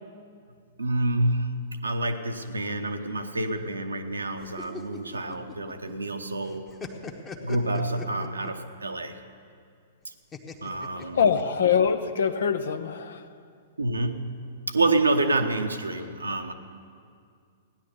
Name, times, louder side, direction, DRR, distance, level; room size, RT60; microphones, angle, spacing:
voice 1, 0.8-6.7 7.4-9.2 10.0-10.1 10.6-11.2 13.8-16.5, right 2 dB, 80° right, 7 dB, 1.0 m, -28 dB
sound 1, 4.4-6.1 6.4-8.7 10.3-11.8, left 4 dB, 20° left, 1.2 m, -41 dB
voice 2, 10.9-13.3, left 7 dB, 65° left, 10 dB, 0.8 m, -24 dB
16.5 x 10.5 x 6.9 m, 2.3 s
figure-of-eight pair, 105°, 0 cm